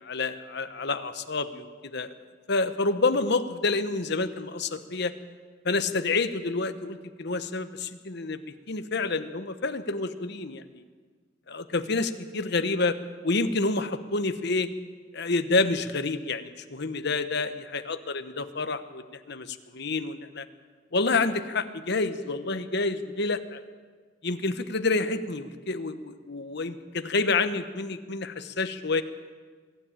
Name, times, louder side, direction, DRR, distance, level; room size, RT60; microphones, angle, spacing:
voice 1, 0.0-2.1 2.5-5.1 5.6-8.4 8.7-10.8 11.5-13.0 13.2-14.7 15.1-20.4 20.9-23.6 24.2-29.0, left 3 dB, 60° left, 10 dB, 1.1 m, -28 dB
22.5 x 13.0 x 8.9 m, 1.5 s
head